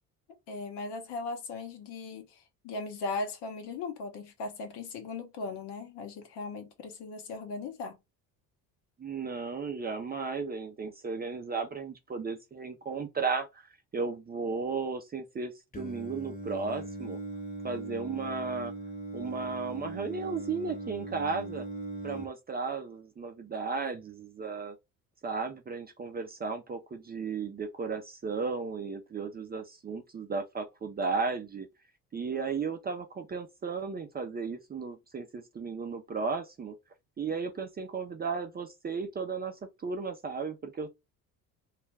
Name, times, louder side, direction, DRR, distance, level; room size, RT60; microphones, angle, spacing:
voice 1, 0.5-7.9, left 3 dB, 65° left, 1.0 m, -38 dB
voice 2, 9.0-13.6 13.9-17.2 17.6-18.7 19.1-21.7 22.0-24.8 25.2-31.7 32.1-36.8 37.2-40.9, right 4 dB, 20° right, 0.4 m, -35 dB
Singing, 15.7-22.3, right 2 dB, 20° left, 0.9 m, -39 dB
2.4 x 2.1 x 3.2 m
hypercardioid pair, 65°, 44 cm